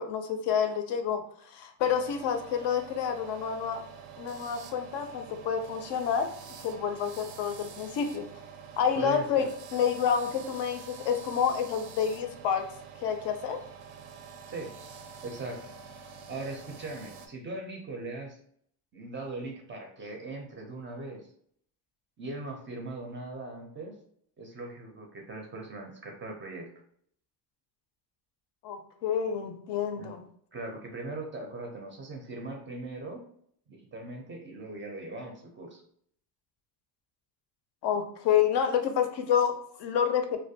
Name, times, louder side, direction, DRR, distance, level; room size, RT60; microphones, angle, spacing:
voice 1, 0.0-3.8 4.2-6.3 6.6-8.3 8.8-9.5 9.7-12.7 13.0-13.6 28.6-30.2 37.8-40.4, left 7 dB, 65° left, 6 dB, 0.5 m, -28 dB
sound 1, 1.8-17.3, right 6 dB, 80° right, 0.5 m, -47 dB
voice 2, 8.9-9.5 14.5-14.7 15.2-15.7 16.3-18.4 18.9-21.3 22.2-24.0 24.4-26.7 30.0-30.1 30.5-33.2 33.7-35.8, right 2 dB, 25° right, 2 dB, 0.4 m, -40 dB
2.4 x 2.1 x 2.7 m, 0.63 s
cardioid pair, 120°, 46 cm